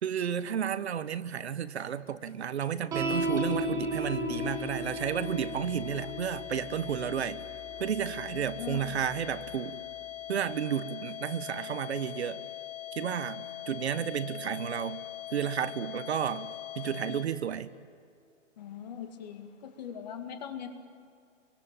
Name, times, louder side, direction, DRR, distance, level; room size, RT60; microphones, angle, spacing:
voice 1, 0.0-7.4 7.8-9.8 10.3-12.4 12.9-15.0 15.3-17.7, right 8 dB, 55° right, 13 dB, 1.3 m, -32 dB
sound 1, 2.9-9.6, equal, 10° right, 1.4 m, -36 dB
sound 2, 4.4-17.2, left 13 dB, 80° left, 3.2 m, -42 dB
voice 2, 8.3-8.9 18.6-20.7, left 8 dB, 35° left, 7 dB, 2.1 m, -41 dB
25.5 x 24.0 x 9.0 m, 2.4 s
hypercardioid pair, 175°, 38 cm